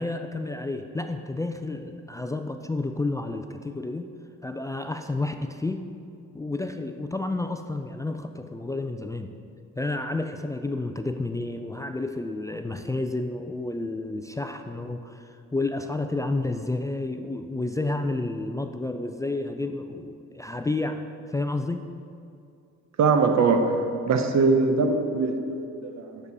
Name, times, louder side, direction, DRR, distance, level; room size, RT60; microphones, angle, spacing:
voice 1, 0.0-4.1 4.4-5.9 6.3-9.3 9.8-21.0 21.3-21.9, left 2 dB, 10° left, 6 dB, 0.4 m, -30 dB
voice 2, 23.0-23.7 24.1-26.2, right 4 dB, 65° right, 6 dB, 0.9 m, -22 dB
9.7 x 6.8 x 4.1 m, 2.4 s
cardioid pair, 90°, 30 cm